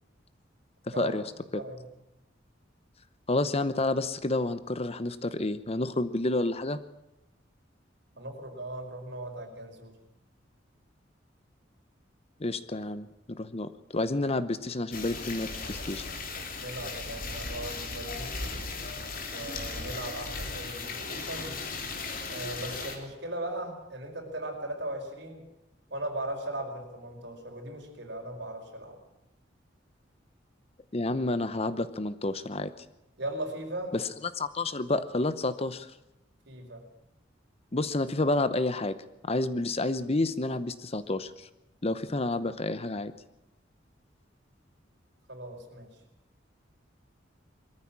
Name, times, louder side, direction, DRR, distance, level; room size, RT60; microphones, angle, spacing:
voice 1, 0.9-1.2 1.5-1.6 3.3-6.8 12.4-16.1 30.9-32.8 33.9-34.0 34.3-35.9 37.7-41.5 41.8-43.1, left 2 dB, 35° left, 14 dB, 0.9 m, -30 dB
voice 2, 8.2-9.9 16.6-18.6 19.3-21.6 22.3-25.4 25.9-29.0 33.2-34.0 36.5-36.9 45.3-45.9, right 1 dB, 65° right, 2 dB, 5.2 m, -38 dB
sound 1, 14.9-23.0, left 3 dB, 50° left, 3.2 m, -37 dB
22.0 x 14.0 x 8.8 m, 0.90 s
head